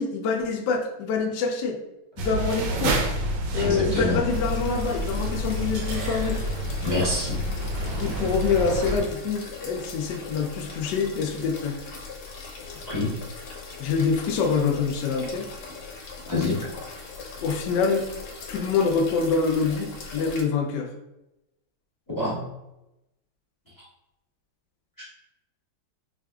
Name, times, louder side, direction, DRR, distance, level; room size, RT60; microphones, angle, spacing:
voice 1, 0.0-1.8 2.2-3.0 3.5-6.4 8.0-11.8 13.8-15.5 17.4-18.1 18.5-20.9, left 5 dB, 70° left, 3 dB, 1.0 m, -25 dB
sound 1, 2.2-9.0, right 1 dB, 70° right, 1.1 m, -28 dB
voice 2, 3.5-4.2 6.1-6.3 6.8-7.4 12.9-13.1 16.3-16.6 22.1-22.4, left 2 dB, 20° left, -7 dB, 0.5 m, -26 dB
sound 2, 4.3-20.4, left 4 dB, 85° left, 1.5 m, -40 dB
4.8 x 2.5 x 2.3 m, 0.92 s
omnidirectional pair, 2.3 m